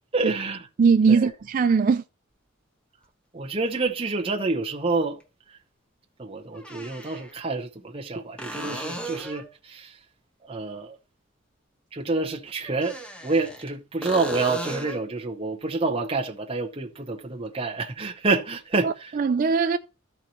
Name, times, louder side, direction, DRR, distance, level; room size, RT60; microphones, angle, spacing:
voice 1, 0.1-0.7 1.1-1.3 3.3-5.2 6.2-9.9 10.5-11.0 11.9-13.0 13.2-19.1, right 3 dB, 30° right, 0.9 m, -28 dB
voice 2, 0.8-2.0 18.8-19.8, right 5 dB, 45° right, 0.3 m, -20 dB
sound 1, 3.0-3.1 5.2-5.3 6.5-7.3 8.4-9.5 12.7-13.7 14.0-15.1 18.7-18.8, right 1 dB, 5° left, 1.1 m, -35 dB
13.0 x 4.6 x 4.2 m
head